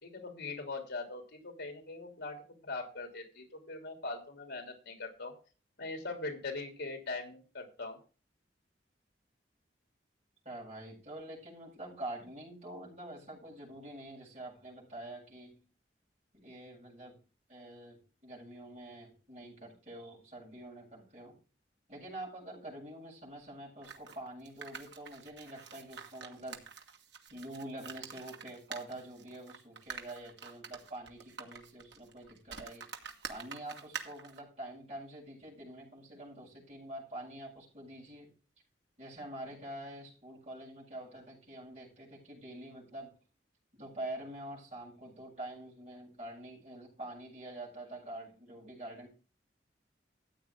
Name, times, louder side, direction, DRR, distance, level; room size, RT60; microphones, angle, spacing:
voice 1, 0.0-5.3 5.8-8.0, left 3 dB, 75° left, 4 dB, 3.2 m, -41 dB
voice 2, 10.4-15.6 16.3-17.2 17.5-21.4 21.9-26.6 27.3-32.9 33.3-38.3 39.0-43.2 43.8-49.1, right 1 dB, 35° right, -4 dB, 7.9 m, -46 dB
sound 1, 23.8-34.4, right 6 dB, 75° right, 1.8 m, -47 dB
14.0 x 8.7 x 3.7 m, 0.36 s
head